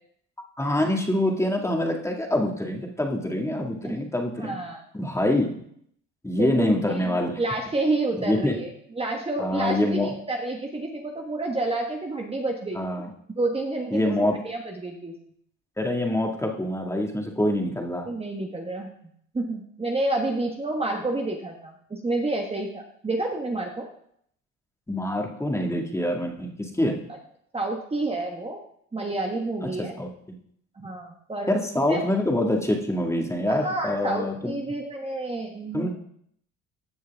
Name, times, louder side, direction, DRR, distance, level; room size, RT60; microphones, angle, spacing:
voice 1, 0.6-4.6 4.9-5.5 6.2-7.4 8.3-8.5 9.4-10.1 12.8-13.1 13.9-14.3 15.8-18.1 24.9-27.0 30.0-30.1 31.5-34.5 35.7-35.9, left 1 dB, 10° left, 1 dB, 1.8 m, -25 dB
voice 2, 4.4-4.8 6.4-12.8 13.3-15.1 18.1-18.9 19.3-23.9 27.5-28.6 28.9-29.9 30.8-32.1 33.5-35.9, right 2 dB, 20° right, 1 dB, 1.3 m, -29 dB
15.0 x 6.4 x 3.5 m, 0.68 s
cardioid pair, 95°, 31 cm